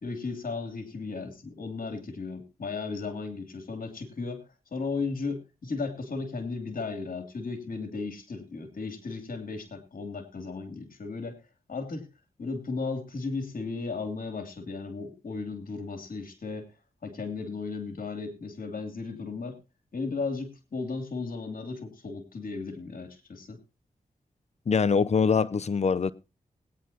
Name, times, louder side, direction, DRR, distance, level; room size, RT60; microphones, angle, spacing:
voice 1, 0.0-4.4 4.7-11.4 11.7-12.1 12.4-16.7 17.0-19.6 19.9-23.6, left 4 dB, 65° left, 2.8 m, -35 dB
voice 2, 24.7-26.1, left 5 dB, 45° left, 0.7 m, -23 dB
20.5 x 9.4 x 2.9 m
cardioid pair, 40°, 15 cm